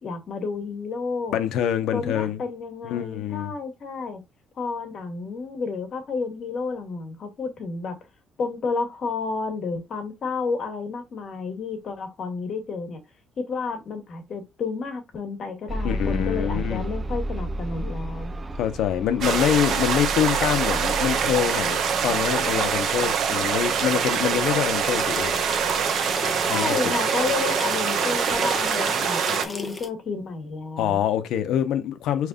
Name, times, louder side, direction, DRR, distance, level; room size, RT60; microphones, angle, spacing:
voice 1, 0.0-1.3 1.9-4.2 4.6-8.0 8.4-13.0 13.4-18.3 26.5-31.0, left 4 dB, 40° left, 1.2 m, -31 dB
voice 2, 1.3-2.4 2.8-3.5 15.8-16.8 18.6-25.3 26.4-26.8 30.8-32.3, left 10 dB, 75° left, 0.7 m, -25 dB
sound 1, 15.7-27.6 28.3-28.4 28.9-29.0, right 1 dB, 15° right, 0.3 m, -34 dB
sound 2, 19.2-29.5, right 7 dB, 55° right, 0.7 m, -24 dB
sound 3, 24.9-29.9, left 3 dB, 15° left, 0.7 m, -34 dB
5.0 x 3.2 x 2.3 m
cardioid pair, 165°, 0 cm